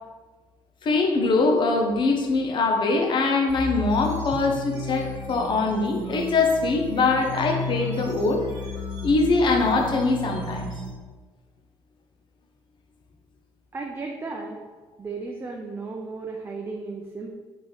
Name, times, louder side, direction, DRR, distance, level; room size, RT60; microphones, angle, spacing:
voice 1, 0.8-8.4 9.0-10.7, left 3 dB, 50° left, 3 dB, 0.7 m, -22 dB
sound 1, 3.5-10.9, left 2 dB, 50° right, 1.1 m, -34 dB
voice 2, 13.7-14.6 15.0-17.3, right 3 dB, 25° right, 0 dB, 0.5 m, -34 dB
3.7 x 3.1 x 4.0 m, 1.3 s
cardioid pair, 105°, 10 cm